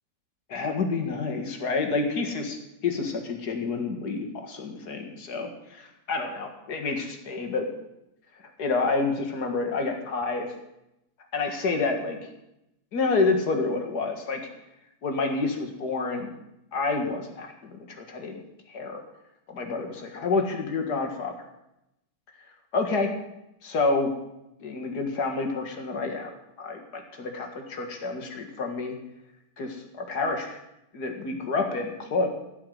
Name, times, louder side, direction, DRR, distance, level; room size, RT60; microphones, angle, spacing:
voice 1, 0.5-2.6 2.8-7.7 8.6-10.5 11.3-12.2 12.9-14.4 15.0-16.3 16.7-19.0 19.5-21.3 22.7-23.1 23.6-24.1 24.6-26.3 26.6-29.0 29.6-30.6 30.9-32.3, left 3 dB, 65° left, 4 dB, 2.4 m, -28 dB
16.5 x 5.8 x 9.4 m, 0.87 s
omnidirectional pair, 1.8 m